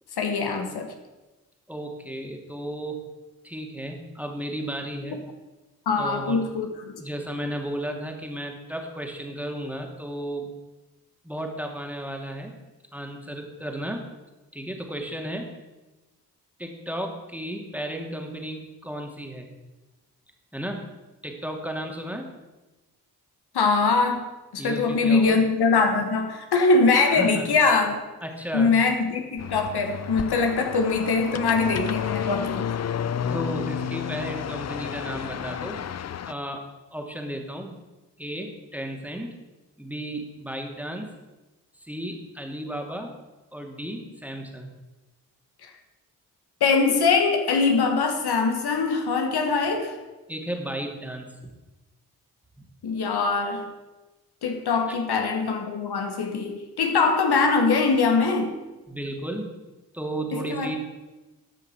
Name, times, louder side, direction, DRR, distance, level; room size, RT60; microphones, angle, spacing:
voice 1, 0.2-0.9 5.9-6.9 23.5-24.3 24.5-28.0 28.5-32.7 46.6-49.9 52.8-53.6 54.4-58.5 60.3-60.7, left 4 dB, 70° left, 5 dB, 1.4 m, -22 dB
voice 2, 1.7-3.0 3.4-5.2 6.0-6.4 7.0-10.5 11.2-12.5 12.9-14.0 14.5-15.5 16.6-19.5 20.5-20.8 21.2-22.3 24.6-25.4 27.1-27.6 28.2-28.7 33.3-35.8 36.2-37.8 38.2-39.3 39.8-41.1 41.8-43.1 43.5-44.7 50.3-51.5 54.9-55.0 58.9-59.6 59.9-60.8, right 1 dB, 5° right, 2 dB, 2.3 m, -34 dB
sound 1, 29.4-36.3, left 8 dB, 40° left, 0.5 m, -31 dB
13.0 x 5.7 x 5.7 m, 1.1 s
supercardioid pair, 40°, 40 cm